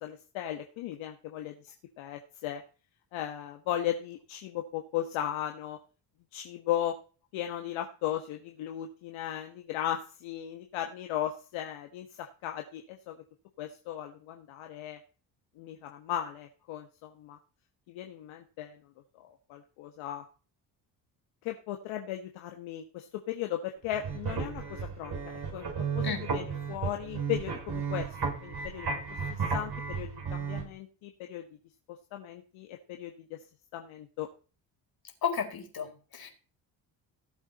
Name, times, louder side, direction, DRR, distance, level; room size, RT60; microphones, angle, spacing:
voice 1, 0.0-2.6 3.1-5.8 6.3-6.9 7.3-13.2 13.6-15.0 15.6-17.4 17.9-18.8 19.1-20.2 21.4-25.2 25.5-25.7 25.9-29.0 29.3-31.4 32.1-33.4 33.7-34.3, left 11 dB, 75° left, 4 dB, 1.6 m, -36 dB
sound 1, 23.8-30.6, right 5 dB, 50° right, 6.4 m, -34 dB
voice 2, 35.2-36.3, left 7 dB, 45° left, 5 dB, 4.3 m, -33 dB
17.0 x 7.4 x 4.3 m, 0.36 s
hypercardioid pair, 55°, 48 cm